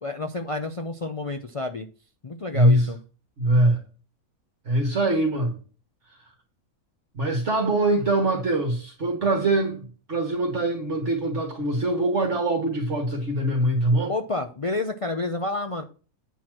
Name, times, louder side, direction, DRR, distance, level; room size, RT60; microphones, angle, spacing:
voice 1, 0.0-1.9 2.2-3.0 14.1-15.8, left 2 dB, 55° left, 0.3 m, -29 dB
voice 2, 2.5-2.9 3.4-3.8 4.6-5.6 7.1-14.1, right 1 dB, 55° right, 1.8 m, -23 dB
8.2 x 4.3 x 6.0 m
omnidirectional pair, 1.5 m